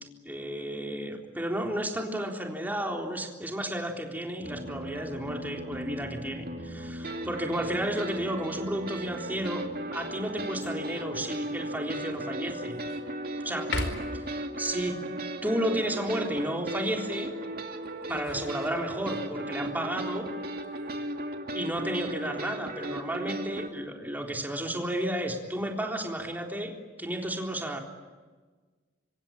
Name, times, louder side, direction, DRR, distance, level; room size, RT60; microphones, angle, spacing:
voice 1, 0.2-9.6 9.9-12.8 13.4-13.7 14.1-14.2 14.6-15.0 15.4-17.3 18.1-20.3 21.5-27.8, right 1 dB, 10° right, 1 dB, 3.8 m, -32 dB
sound 1, 4.4-23.7, right 1 dB, 55° right, 2.6 m, -36 dB
sound 2, 10.6-11.1 11.6-11.7 12.2-13.1 13.6-14.3 17.8-19.2 20.6-21.1, left 2 dB, 85° left, 4.8 m, -38 dB
25.5 x 25.0 x 8.9 m, 1.4 s
head